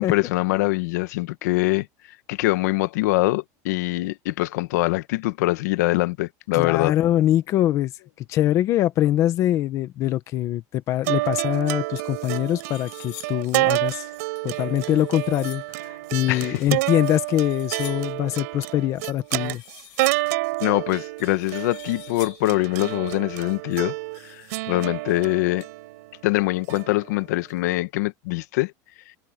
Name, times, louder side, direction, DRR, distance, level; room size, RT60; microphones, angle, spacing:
voice 1, 0.0-1.9 2.3-6.9 16.3-16.6 20.6-23.9 24.2-25.7 26.2-28.7, left 19 dB, 80° left, 1.5 m, -23 dB
voice 2, 6.5-7.9 8.3-14.0 14.4-19.6, left 13 dB, 35° left, 1.3 m, -23 dB
sound 1, 11.1-27.5, right 22 dB, 70° right, 5.3 m, -29 dB
sound 2, 12.1-13.5 14.4-15.8 16.8-18.2 19.0-20.4 21.2-22.6, left 29 dB, 55° left, 7.6 m, -46 dB
cardioid pair, 175°, 9 cm